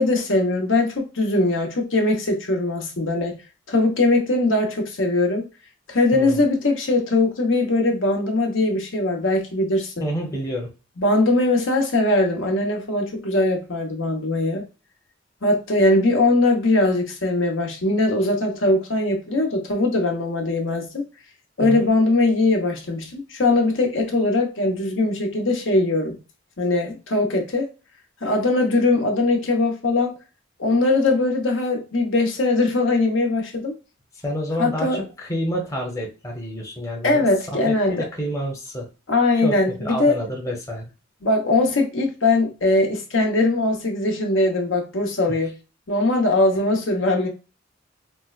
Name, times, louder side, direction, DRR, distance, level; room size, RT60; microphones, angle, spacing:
voice 1, 0.0-3.4 3.7-5.4 5.9-10.1 11.0-14.6 15.4-21.0 21.6-26.2 26.6-27.7 28.2-30.2 30.6-33.7 34.6-35.0 37.0-38.0 39.1-40.2 41.2-45.5 45.9-47.3, left 2 dB, 75° left, 1.0 m, -21 dB
voice 2, 6.1-6.4 10.0-10.7 21.6-21.9 34.2-37.3 37.7-38.9 39.3-40.9 46.5-46.7, equal, 15° left, 0.8 m, -28 dB
4.4 x 2.1 x 2.3 m
head